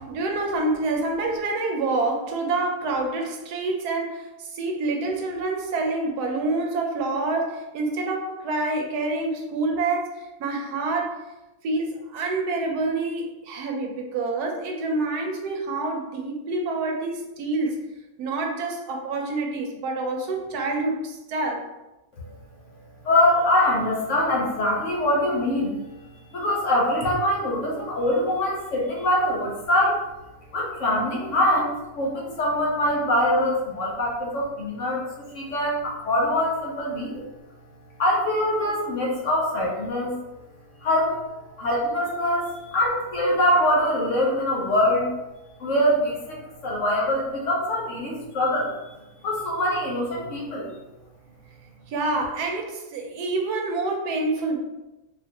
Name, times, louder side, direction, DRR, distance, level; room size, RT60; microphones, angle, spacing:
voice 1, 0.0-11.2 11.6-17.8 18.2-21.7 51.9-54.6, right 2 dB, 85° right, 2 dB, 1.2 m, -27 dB
voice 2, 23.0-25.9 26.3-30.0 30.5-35.0 35.3-37.2 38.0-40.1 40.8-41.1 41.6-45.1 45.6-48.7 49.2-50.7, left 1 dB, 60° left, -3 dB, 1.1 m, -23 dB
4.4 x 2.5 x 2.8 m, 0.99 s
omnidirectional pair, 1.6 m